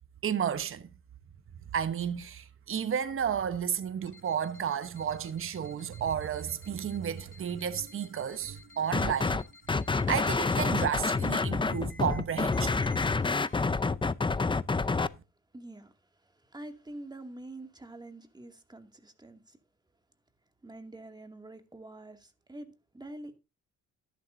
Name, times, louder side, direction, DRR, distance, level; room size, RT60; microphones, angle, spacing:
voice 1, 0.2-0.9 1.7-9.4 10.1-12.8, right 8 dB, 45° right, 1.1 m, -32 dB
sound 1, 4.1-13.7, left 3 dB, 40° left, 2.6 m, -55 dB
sound 2, 8.9-9.4 9.7-15.1, left 4 dB, 15° left, 0.6 m, -28 dB
voice 2, 15.5-19.6 20.6-23.4, right 1 dB, 15° right, 2.4 m, -46 dB
13.0 x 11.5 x 2.7 m
cardioid pair, 90°, 30 cm